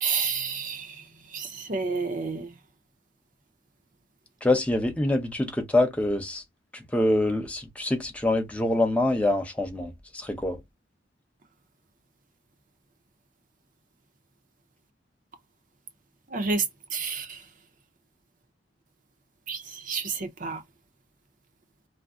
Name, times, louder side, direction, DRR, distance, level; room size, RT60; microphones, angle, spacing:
voice 1, 0.0-0.9 1.3-2.5 16.3-16.6 16.9-17.4 19.5-19.6 19.9-20.6, right 5 dB, 45° right, 0.7 m, -29 dB
voice 2, 4.4-6.4 6.9-10.6, left 1 dB, 5° left, 0.7 m, -25 dB
2.6 x 2.1 x 3.5 m
head